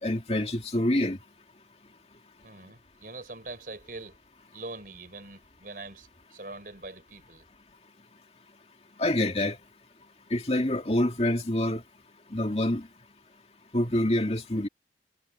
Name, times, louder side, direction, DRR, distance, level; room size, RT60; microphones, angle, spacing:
voice 1, 0.0-1.2 9.0-9.6 10.3-11.8 12.3-12.9 13.7-14.7, left 1 dB, 35° left, 2.5 m, -26 dB
voice 2, 2.4-4.2 4.5-7.4, right 2 dB, 50° right, 5.4 m, -43 dB
head